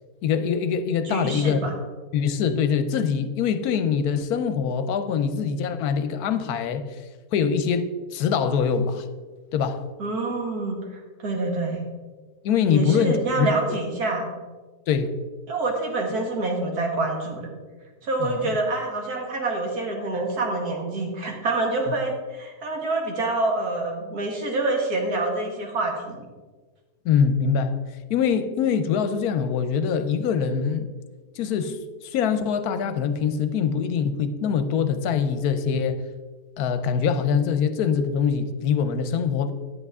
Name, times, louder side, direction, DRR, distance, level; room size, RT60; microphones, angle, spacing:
voice 1, 0.2-1.6 2.1-6.9 7.3-7.9 8.1-9.0 9.5-9.8 12.4-13.5 14.9-15.2 18.2-18.4 27.0-27.8 28.1-30.9 31.4-31.8 32.0-36.0 36.6-39.5, left 7 dB, 80° left, 1.1 m, -23 dB
voice 2, 1.0-1.7 10.0-10.8 11.2-11.8 12.7-14.3 15.5-17.5 18.0-26.2, right 2 dB, 75° right, 2.1 m, -26 dB
9.4 x 8.0 x 3.6 m
omnidirectional pair, 1.6 m